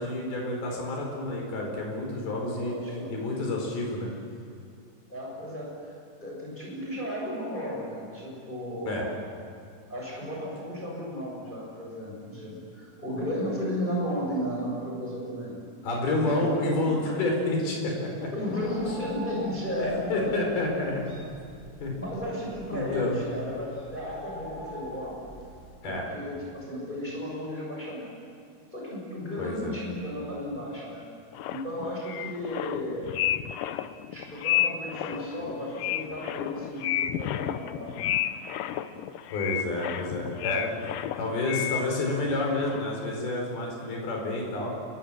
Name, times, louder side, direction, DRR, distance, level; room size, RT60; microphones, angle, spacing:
voice 1, 0.0-2.7 3.1-4.1 8.9-9.0 15.8-18.3 19.8-21.1 21.8-21.9 22.7-23.2 25.8-26.0 29.4-29.7 39.3-40.7 41.2-44.7, left 2 dB, 65° left, 0 dB, 6.6 m, -29 dB
voice 2, 2.4-3.2 5.1-9.1 9.9-15.6 16.2-17.0 18.3-20.5 21.9-25.2 25.8-28.1 28.7-31.1 31.5-33.1 33.8-38.4, equal, 10° left, -3 dB, 6.4 m, -34 dB
Bird, 18.6-25.7, equal, 10° right, 7.1 m, -45 dB
sound 1, 31.3-42.3 42.6-43.1, left 12 dB, 90° left, 1.8 m, -31 dB
29.5 x 23.0 x 7.6 m, 2.4 s
omnidirectional pair, 4.8 m